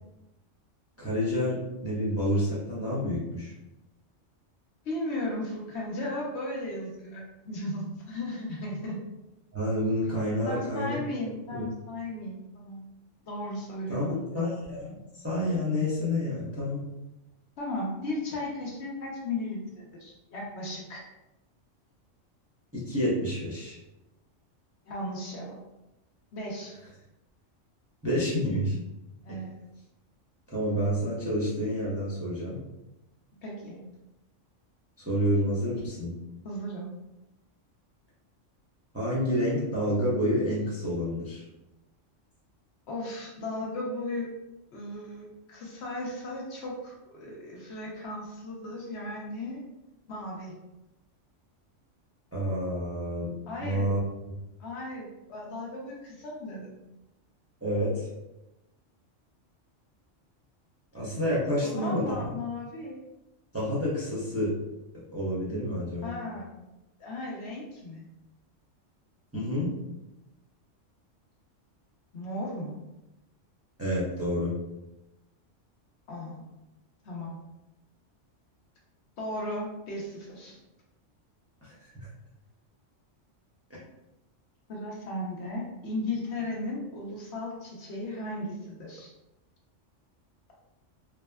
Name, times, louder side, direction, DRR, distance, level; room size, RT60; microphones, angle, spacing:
voice 1, 1.0-3.5 9.5-11.0 11.5-11.6 13.9-16.8 22.7-23.8 28.0-28.7 29.3-29.4 30.5-32.6 35.0-36.1 38.9-41.4 52.3-53.3 53.6-54.0 54.3-54.4 57.6-58.1 60.9-62.2 63.5-64.6 65.1-66.1 69.3-69.7 73.8-74.5 81.6-82.1, equal, 15° right, -8 dB, 0.5 m, -29 dB
voice 2, 4.8-9.0 10.4-12.8 13.2-14.4 17.6-21.0 24.9-25.6 26.3-26.7 29.2-29.5 33.4-33.8 36.4-36.9 42.9-44.3 44.7-49.6 50.1-50.5 53.5-53.9 54.6-56.8 61.6-63.0 66.0-66.5 67.0-68.1 72.1-72.8 76.1-76.4 77.0-77.4 79.2-80.6 84.7-89.1, left 1 dB, 65° left, -3 dB, 0.9 m, -36 dB
3.3 x 2.1 x 2.2 m, 0.96 s
omnidirectional pair, 1.3 m